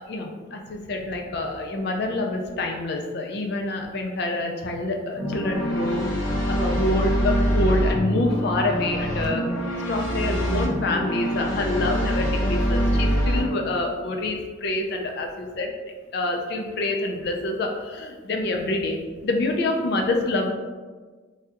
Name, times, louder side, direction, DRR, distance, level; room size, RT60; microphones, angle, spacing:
voice 1, 0.0-6.0 6.5-9.4 9.9-15.7 16.1-20.5, left 2 dB, 50° left, 2 dB, 0.4 m, -26 dB
sound 1, 5.2-13.4, equal, 75° left, 0.9 m, -24 dB
3.3 x 2.3 x 2.8 m, 1.4 s
head